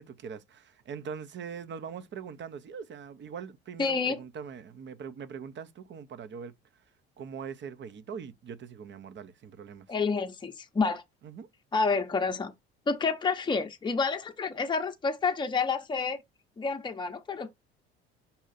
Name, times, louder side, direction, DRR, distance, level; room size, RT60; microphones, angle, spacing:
voice 1, 0.0-6.5 7.2-9.9 11.2-11.5, right 6 dB, 35° right, 0.7 m, -42 dB
voice 2, 3.8-4.2 9.9-11.0 11.7-12.5 12.9-16.2 16.6-17.5, left 4 dB, 15° left, 0.7 m, -29 dB
5.5 x 2.4 x 4.0 m
hypercardioid pair, 60°, 30 cm